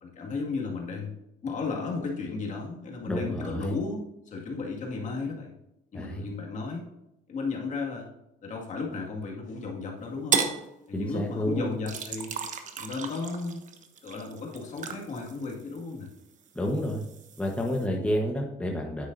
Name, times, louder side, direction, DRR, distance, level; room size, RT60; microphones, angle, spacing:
voice 1, 0.0-5.5 5.9-6.9 7.3-8.1 8.4-10.4 10.9-12.3 12.8-13.6 14.0-16.1, left 4 dB, 45° left, -1 dB, 2.1 m, -34 dB
voice 2, 3.1-3.7 5.9-6.2 10.9-11.8 16.5-17.0 17.4-19.1, equal, 5° left, 0 dB, 1.2 m, -29 dB
sound 1, 10.3-10.6 11.9-16.1 16.5-17.9, right 6 dB, 50° right, 1.1 m, -34 dB
9.5 x 8.1 x 2.7 m, 0.88 s
cardioid pair, 110°, 17 cm